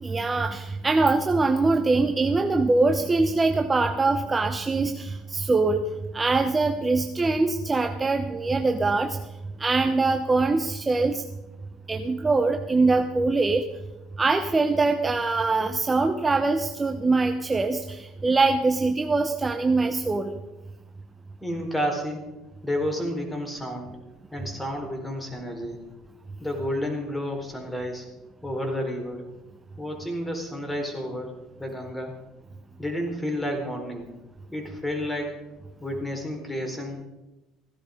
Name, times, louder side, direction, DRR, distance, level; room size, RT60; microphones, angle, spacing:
voice 1, 0.0-5.8 6.1-9.2 9.6-11.2 11.9-13.6 14.2-20.3, right 3 dB, 20° right, 6 dB, 0.9 m, -23 dB
voice 2, 21.4-22.2 22.6-24.0 24.3-25.8 26.4-28.1 28.4-29.3 29.8-32.2 32.8-34.1 34.5-35.4 35.8-37.0, equal, 10° left, 2 dB, 4.2 m, -31 dB
15.5 x 11.5 x 5.2 m, 1.0 s
supercardioid pair, 80°, 0 cm